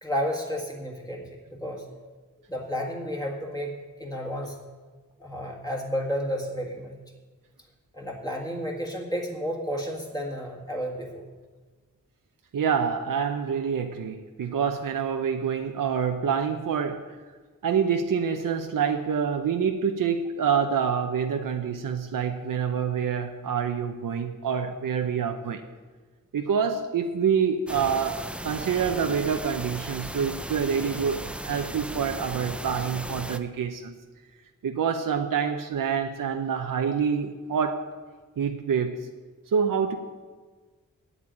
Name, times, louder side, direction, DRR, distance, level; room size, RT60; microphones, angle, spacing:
voice 1, 0.0-1.9 2.5-3.7 4.0-4.6 5.2-7.0 7.9-11.2, equal, 10° left, -2 dB, 1.7 m, -31 dB
voice 2, 12.5-17.1 17.6-25.6 26.3-33.9 34.6-37.8 38.4-39.1 39.5-40.0, right 7 dB, 90° right, 5 dB, 0.7 m, -27 dB
sound 1, 27.7-33.4, right 1 dB, 5° right, 0.4 m, -36 dB
8.9 x 8.1 x 8.8 m, 1.4 s
wide cardioid pair, 145°, 32 cm